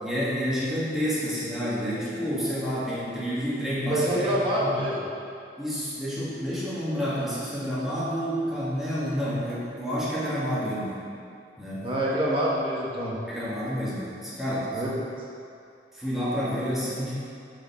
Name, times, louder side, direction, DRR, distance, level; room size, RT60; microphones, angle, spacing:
voice 1, 0.0-4.9 5.6-10.9 11.6-11.9 13.3-14.8 15.9-17.2, equal, ahead, -10 dB, 1.9 m, -29 dB
voice 2, 3.9-5.0 11.8-13.2 14.7-15.0, right 1 dB, 30° right, -6 dB, 1.5 m, -26 dB
6.8 x 5.0 x 6.9 m, 2.5 s
head